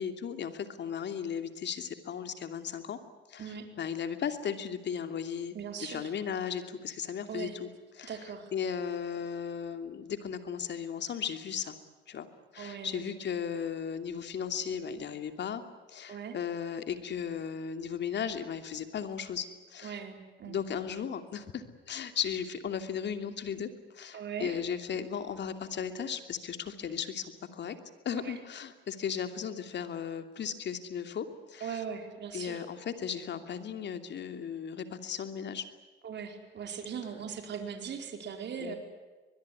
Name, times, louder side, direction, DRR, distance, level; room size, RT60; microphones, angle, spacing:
voice 1, 0.0-3.0 3.3-5.5 5.8-7.7 8.0-11.7 12.1-12.3 12.5-15.6 15.9-20.0 20.4-27.8 28.0-31.8 32.3-35.7 38.6-38.7, left 7 dB, 60° left, 9 dB, 2.9 m, -36 dB
voice 2, 5.5-6.1 7.3-7.5 8.0-8.5 12.6-13.1 16.1-16.4 19.8-20.6 24.1-24.6 28.2-28.3 31.6-32.6 36.0-38.8, right 7 dB, 60° right, 5 dB, 4.6 m, -39 dB
24.0 x 21.5 x 9.8 m, 1.3 s
cardioid pair, 90°, 20 cm